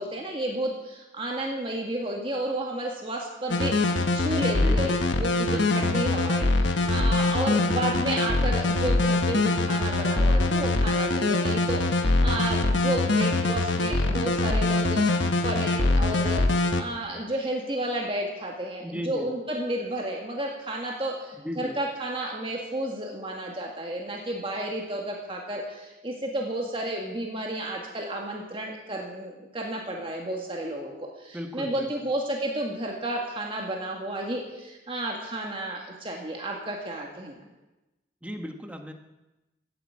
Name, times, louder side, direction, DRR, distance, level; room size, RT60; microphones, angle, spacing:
voice 1, 0.0-15.0 15.4-16.4 16.8-37.4, right 1 dB, 30° right, 0 dB, 1.8 m, -32 dB
sound 1, 3.5-16.8, left 2 dB, 80° left, 1.1 m, -23 dB
voice 2, 4.5-4.9 5.5-5.9 18.8-19.3 21.4-21.8 31.3-31.9 38.2-38.9, equal, 5° right, 4 dB, 1.1 m, -35 dB
15.0 x 7.9 x 8.6 m, 1.0 s
head